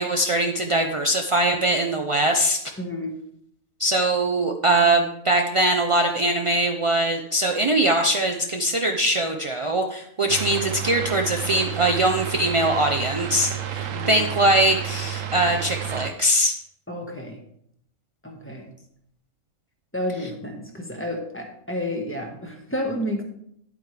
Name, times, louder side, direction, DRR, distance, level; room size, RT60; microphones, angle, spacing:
voice 1, 0.0-2.6 3.8-16.5, right 1 dB, 45° right, 3 dB, 0.4 m, -22 dB
voice 2, 2.8-3.1 13.9-14.2 16.9-17.4 18.2-18.7 19.9-23.2, left 1 dB, 10° left, 1 dB, 1.4 m, -30 dB
sound 1, 10.3-16.1, right 10 dB, 65° right, 1.2 m, -31 dB
10.5 x 8.4 x 3.3 m, 0.72 s
omnidirectional pair, 1.5 m